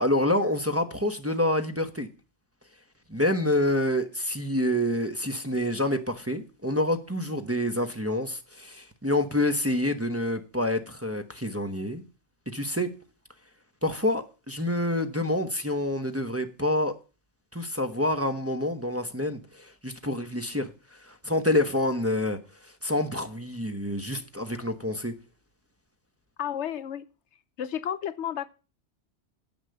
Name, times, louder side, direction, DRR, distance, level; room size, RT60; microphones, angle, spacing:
voice 1, 0.0-2.1 3.1-12.0 12.5-13.0 13.8-16.9 17.5-25.1, left 1 dB, 15° right, 0.9 m, -27 dB
voice 2, 26.4-27.1 27.6-28.5, left 9 dB, 75° left, 1.0 m, -32 dB
9.8 x 7.1 x 6.7 m
omnidirectional pair, 1.2 m